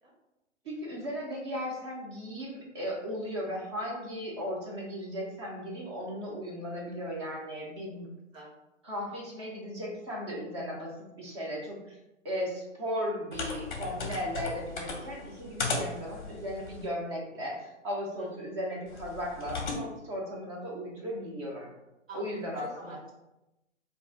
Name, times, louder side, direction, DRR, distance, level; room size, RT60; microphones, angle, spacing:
voice 1, 0.6-8.1 8.9-12.0 12.2-21.7 22.1-22.7, equal, 25° right, -2 dB, 0.5 m, -36 dB
sound 1, 13.3-16.9 18.9-19.8, left 3 dB, 40° left, 0.6 m, -36 dB
voice 2, 18.2-18.5 22.1-23.1, right 1 dB, 90° right, -3 dB, 1.3 m, -48 dB
2.4 x 2.3 x 3.7 m, 0.93 s
figure-of-eight pair, 140°, 38 cm